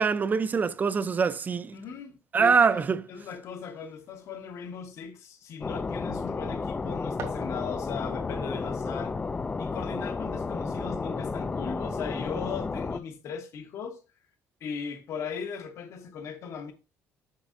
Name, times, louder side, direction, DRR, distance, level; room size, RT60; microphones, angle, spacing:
voice 1, 0.0-1.8 2.3-3.0, right 5 dB, 35° right, 0.6 m, -24 dB
voice 2, 1.7-2.8 3.1-9.2 9.6-14.0 14.6-16.7, left 6 dB, 65° left, 1.2 m, -38 dB
sound 1, 5.6-13.0, left 4 dB, 20° left, 0.4 m, -32 dB
sound 2, 7.1-8.1, right 6 dB, 70° right, 2.1 m, -44 dB
7.3 x 6.1 x 2.6 m
cardioid pair, 95°, 5 cm